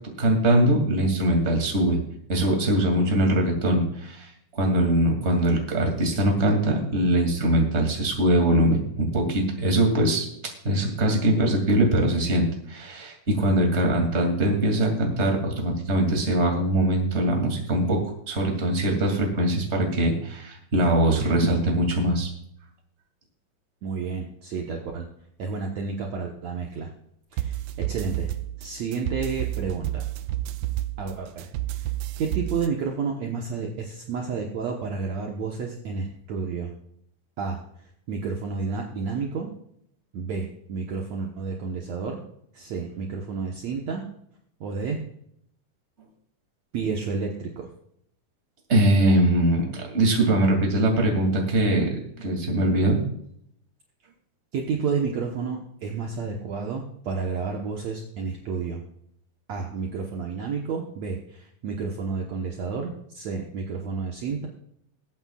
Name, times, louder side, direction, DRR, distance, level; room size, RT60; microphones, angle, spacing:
voice 1, 0.2-2.0 2.3-10.2 10.6-22.3 48.7-53.0, right 1 dB, 20° right, 1 dB, 2.4 m, -22 dB
voice 2, 23.8-25.1 25.4-26.9 27.3-28.3 28.6-30.0 31.0-31.5 32.2-36.7 37.4-37.6 38.1-39.5 40.1-42.2 42.5-44.0 44.6-45.0 46.7-47.7 54.5-58.8 59.5-64.5, right 5 dB, 60° right, 0 dB, 2.2 m, -30 dB
sound 1, 27.4-32.7, right 14 dB, 80° right, 1.7 m, -30 dB
21.5 x 8.8 x 2.4 m, 0.71 s
omnidirectional pair, 3.9 m